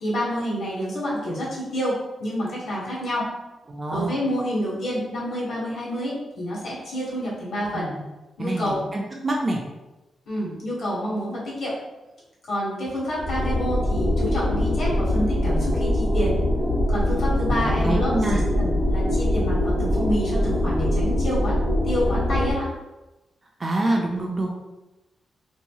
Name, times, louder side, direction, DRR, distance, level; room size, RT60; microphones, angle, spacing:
voice 1, 0.0-3.3 3.9-7.9 8.4-8.8 10.3-11.7 12.5-16.4 16.9-18.1 18.6-21.5 21.8-22.7, equal, 60° left, -6 dB, 1.3 m, -28 dB
voice 2, 3.7-4.2 7.7-8.0 8.4-9.6 17.5-18.4 23.6-24.5, right 1 dB, 30° right, 0 dB, 0.4 m, -26 dB
sound 1, 13.1-22.5, left 1 dB, 55° right, 1.1 m, -23 dB
2.9 x 2.7 x 2.2 m, 1.0 s
cardioid pair, 115°, 0 cm